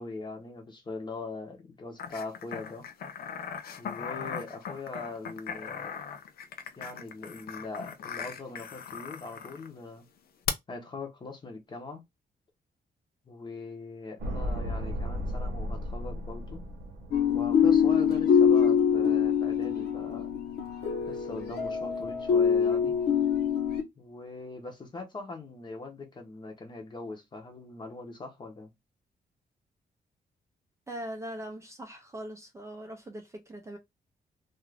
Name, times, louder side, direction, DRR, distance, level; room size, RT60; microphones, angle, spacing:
voice 1, 0.0-2.9 3.8-6.0 6.8-10.1 10.7-12.0 13.3-16.6 17.3-20.3 21.1-23.0 24.0-28.7, left 3 dB, 25° left, 0.7 m, -41 dB
sound 1, 2.0-9.7 10.5-10.6, left 8 dB, 65° left, 0.4 m, -38 dB
sound 2, 14.2-18.5 18.7-18.8, equal, 90° right, 0.9 m, -35 dB
sound 3, 17.1-23.8, left 7 dB, 80° left, 0.9 m, -24 dB
voice 2, 30.9-33.8, right 1 dB, 20° right, 0.4 m, -41 dB
2.4 x 2.4 x 3.2 m
wide cardioid pair, 165°, 17 cm